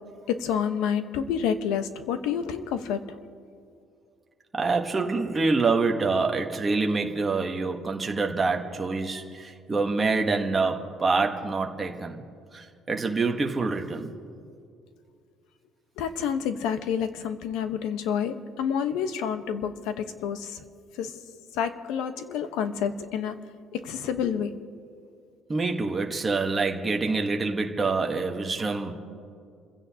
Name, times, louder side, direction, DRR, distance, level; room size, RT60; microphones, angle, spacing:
voice 1, 0.3-3.2 16.0-20.6 21.0-21.1 21.5-23.4 23.7-24.5, left 8 dB, 75° left, 9 dB, 1.0 m, -29 dB
voice 2, 4.5-12.2 12.5-14.1 25.5-28.9, right 3 dB, 15° right, 2 dB, 1.1 m, -26 dB
28.5 x 16.0 x 2.8 m, 2.3 s
cardioid pair, 180°, 0 cm